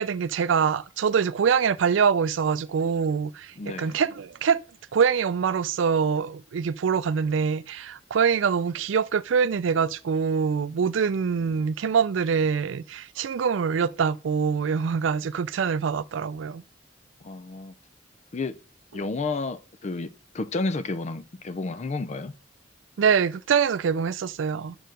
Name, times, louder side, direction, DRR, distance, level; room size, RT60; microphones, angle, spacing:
voice 1, 0.0-4.6 4.9-16.6 23.0-24.8, right 6 dB, 85° right, 0.4 m, -24 dB
voice 2, 3.6-4.0 17.2-17.7 18.3-18.5 18.9-22.4, left 3 dB, 35° left, 0.4 m, -31 dB
6.2 x 4.6 x 5.1 m
head